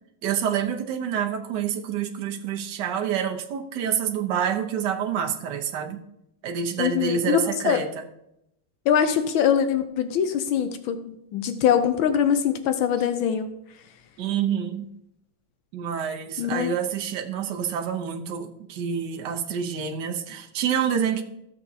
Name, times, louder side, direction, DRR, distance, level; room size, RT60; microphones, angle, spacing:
voice 1, 0.2-6.0 6.4-8.0 14.2-14.9 15.7-21.2, right 8 dB, 65° right, 3 dB, 1.5 m, -27 dB
voice 2, 6.8-7.4 7.6-7.8 8.9-13.5 16.4-16.7, left 8 dB, 80° left, 8 dB, 1.5 m, -23 dB
15.0 x 7.0 x 2.8 m, 0.79 s
omnidirectional pair, 2.2 m